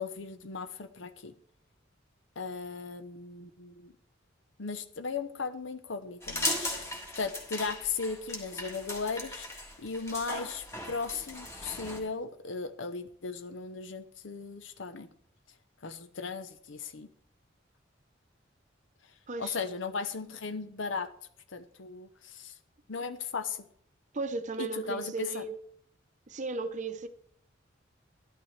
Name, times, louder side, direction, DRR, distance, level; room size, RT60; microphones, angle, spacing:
voice 1, 0.0-1.3 2.4-3.9 4.6-9.5 9.8-15.1 15.8-17.1 19.4-21.1 21.5-22.5 22.9-23.7 24.6-25.4, left 4 dB, 75° left, 0.7 m, -37 dB
sound 1, 6.2-12.0, left 1 dB, 15° left, 1.6 m, -37 dB
voice 2, 19.3-19.6 24.1-25.5 26.3-27.1, right 3 dB, 40° right, 0.7 m, -35 dB
12.5 x 11.5 x 3.3 m
head